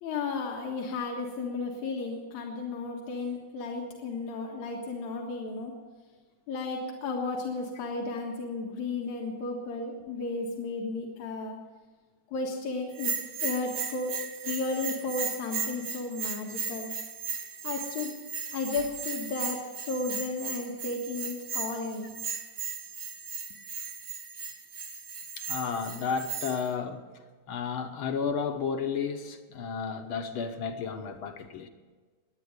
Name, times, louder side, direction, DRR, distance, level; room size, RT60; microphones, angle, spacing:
voice 1, 0.0-5.7 6.5-11.6 12.3-13.1 13.4-14.2 14.4-16.9 17.6-18.1 18.5-22.1, left 3 dB, 85° left, 0 dB, 3.0 m, -33 dB
Bell, 12.9-26.7, right 5 dB, 60° right, 3.0 m, -36 dB
voice 2, 25.4-27.0 27.5-31.7, left 6 dB, 60° left, 6 dB, 1.5 m, -32 dB
21.5 x 9.2 x 6.7 m, 1.4 s
omnidirectional pair, 3.3 m